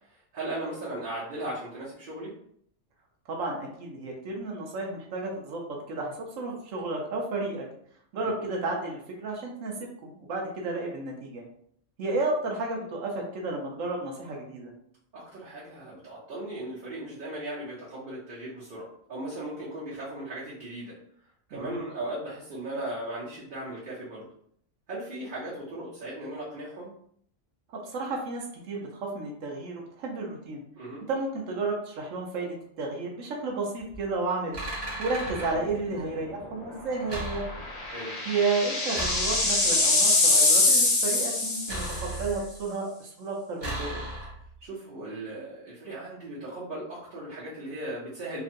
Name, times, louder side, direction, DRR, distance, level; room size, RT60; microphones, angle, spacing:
voice 1, 0.3-2.3 15.1-20.9 21.5-24.2 24.9-26.9 30.8-31.0 37.9-38.1 44.6-48.4, right 1 dB, 45° right, -8 dB, 0.9 m, -37 dB
voice 2, 3.3-7.6 8.1-11.4 12.0-14.7 21.5-21.8 27.8-30.6 31.1-34.6 35.0-37.4 38.3-44.0, right 3 dB, 90° right, 0 dB, 1.1 m, -32 dB
sound 1, 33.9-34.1 34.5-35.6 37.1-37.9 38.9-39.8 41.7-42.6 43.6-44.6, right 1 dB, 20° right, 1.0 m, -36 dB
sound 2, 35.3-35.6 36.0-36.1 37.5-42.2, left 2 dB, 65° left, 1.0 m, -24 dB
2.9 x 2.5 x 2.5 m, 0.66 s
omnidirectional pair, 1.3 m